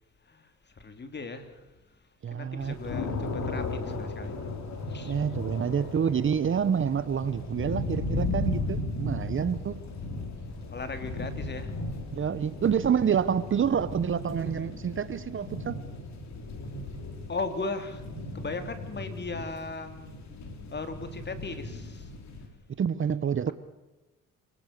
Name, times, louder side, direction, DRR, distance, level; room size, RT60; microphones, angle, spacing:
voice 1, 0.2-2.0 2.3-4.5 4.9-5.2 10.7-11.8 17.3-18.0 18.3-20.1 20.7-22.1, left 3 dB, 35° left, 9 dB, 3.1 m, -37 dB
voice 2, 2.2-2.7 5.0-9.8 12.1-15.8 22.8-23.5, right 7 dB, 40° right, 16 dB, 1.0 m, -28 dB
sound 1, 2.6-22.5, left 2 dB, 65° left, 4.4 m, -36 dB
26.5 x 19.0 x 6.7 m, 1.1 s
cardioid pair, 90°, 30 cm